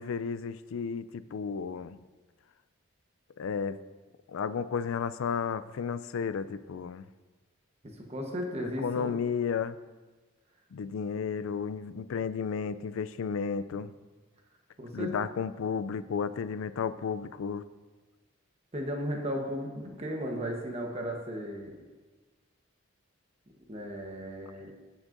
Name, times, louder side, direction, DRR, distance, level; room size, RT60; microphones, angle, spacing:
voice 1, 0.0-2.0 3.4-3.8 4.3-7.0 8.6-9.8 10.7-13.9 14.9-17.6, left 6 dB, 80° left, 14 dB, 0.4 m, -33 dB
voice 2, 7.8-9.1 14.8-15.1 18.7-21.8 23.7-24.7, equal, 30° right, 1 dB, 1.0 m, -35 dB
15.5 x 6.3 x 2.6 m, 1.3 s
head